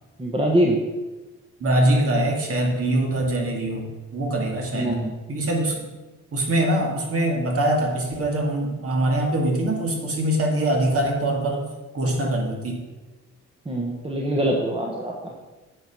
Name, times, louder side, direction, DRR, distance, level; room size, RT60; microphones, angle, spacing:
voice 1, 0.2-0.8 4.7-5.1 13.6-15.3, right 1 dB, 20° right, -1 dB, 1.3 m, -23 dB
voice 2, 1.6-4.9 5.3-5.9 6.3-12.8, right 1 dB, 50° right, 1 dB, 2.4 m, -23 dB
9.1 x 5.1 x 6.1 m, 1.2 s
cardioid pair, 90°, 30 cm